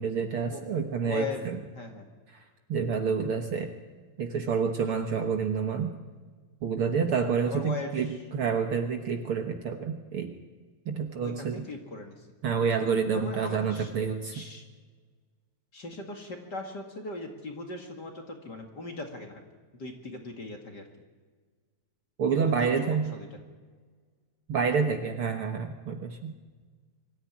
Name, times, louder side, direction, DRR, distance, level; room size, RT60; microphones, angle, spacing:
voice 1, 0.0-1.6 2.7-3.7 4.2-5.9 6.6-10.3 10.9-11.7 12.4-14.5 22.2-23.1 24.5-26.3, right 6 dB, 55° right, 5 dB, 1.8 m, -28 dB
voice 2, 1.0-1.5 1.7-2.1 7.5-7.9 11.2-12.2 13.2-13.9 14.3-14.7 15.7-19.4 19.7-20.9 22.3-23.3, left 3 dB, 40° left, 3 dB, 2.4 m, -39 dB
24.0 x 14.0 x 9.7 m, 1.5 s
omnidirectional pair, 3.3 m